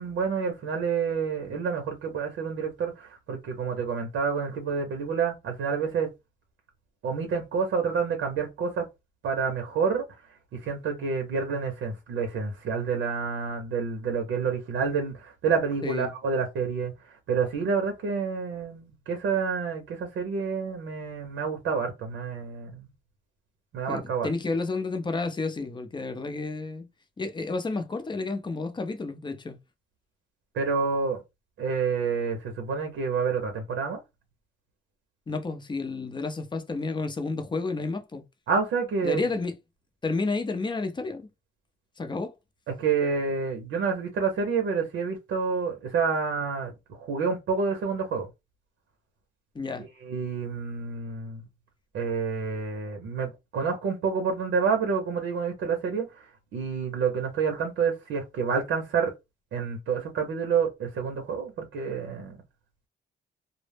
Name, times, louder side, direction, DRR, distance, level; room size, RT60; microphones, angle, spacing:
voice 1, 0.0-6.1 7.0-8.8 9.2-10.0 10.6-22.9 23.7-24.3 30.5-31.2 31.6-34.0 38.5-39.3 42.7-48.3 49.8-51.4 51.9-59.1 59.5-62.4, right 5 dB, 75° right, 0.7 m, -28 dB
voice 2, 15.8-16.1 23.9-26.9 27.2-29.6 35.3-38.2 39.0-39.5 40.0-41.3 42.0-42.3 49.5-49.9, left 3 dB, 25° left, 0.5 m, -31 dB
2.0 x 2.0 x 3.2 m
cardioid pair, 90°, 20 cm